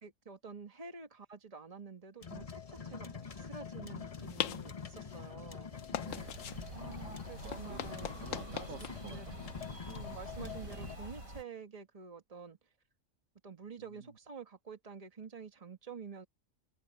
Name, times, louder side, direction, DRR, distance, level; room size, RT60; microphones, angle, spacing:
voice 1, 0.0-5.7 6.7-8.7 9.0-9.4 9.9-12.6 13.4-16.3, right 5 dB, 25° right, 1.7 m, -49 dB
sound 1, 2.2-11.0, left 6 dB, 30° left, 1.0 m, -46 dB
voice 2, 2.7-3.2 6.0-6.5 7.4-7.8 8.2-9.8 13.8-14.2, right 5 dB, 65° right, 1.8 m, -52 dB
sound 2, 3.6-11.2, left 9 dB, 75° left, 1.2 m, -44 dB
sound 3, 6.1-11.4, right 1 dB, 80° right, 5.0 m, -47 dB
omnidirectional pair, 1.4 m